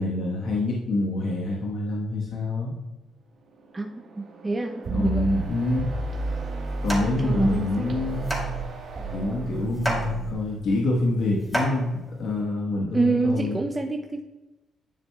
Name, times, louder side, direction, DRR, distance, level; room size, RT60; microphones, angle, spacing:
voice 1, 0.0-2.7 4.9-5.9 6.8-8.4 9.1-13.6, left 2 dB, 70° left, -3 dB, 1.2 m, -26 dB
sound 1, 3.3-10.3, right 3 dB, 65° right, 1.4 m, -43 dB
voice 2, 3.7-5.3 7.2-7.9 12.9-14.2, right 3 dB, 20° right, 3 dB, 0.5 m, -27 dB
sound 2, 4.8-7.6 7.9-10.3, right 4 dB, 50° right, 1.6 m, -31 dB
sound 3, 5.9-12.4, equal, 10° left, 2.4 m, -34 dB
10.5 x 6.2 x 2.3 m, 1.1 s
cardioid pair, 90°, 0 cm